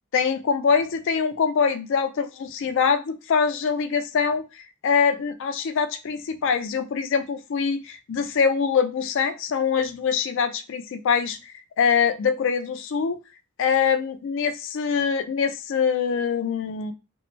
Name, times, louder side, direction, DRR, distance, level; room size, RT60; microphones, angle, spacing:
voice 1, 0.1-11.4 11.8-13.2 13.6-16.9, left 6 dB, 60° left, 9 dB, 0.3 m, -24 dB
2.5 x 2.0 x 3.0 m, 0.28 s
head